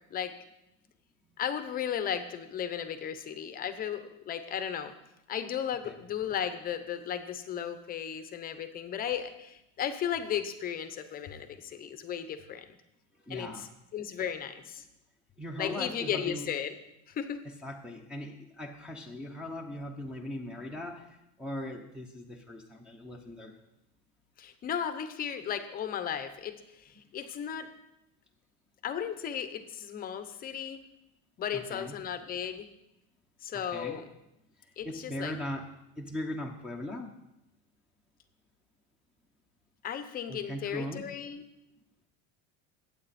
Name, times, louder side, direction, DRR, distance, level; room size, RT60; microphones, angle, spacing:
voice 1, 1.4-4.9 5.3-12.7 13.3-14.8 15.6-16.7 17.1-17.4 24.4-27.7 28.8-30.8 31.4-32.7 33.4-34.0 34.8-35.3 39.8-41.4, left 8 dB, 25° left, 10 dB, 0.9 m, -35 dB
voice 2, 13.3-13.7 15.4-16.5 17.6-23.6 31.5-32.0 33.5-34.0 34.8-35.7 36.0-37.1 40.3-41.1, left 1 dB, 5° right, -2 dB, 0.9 m, -39 dB
20.5 x 8.7 x 4.3 m, 0.88 s
cardioid pair, 160°, 34 cm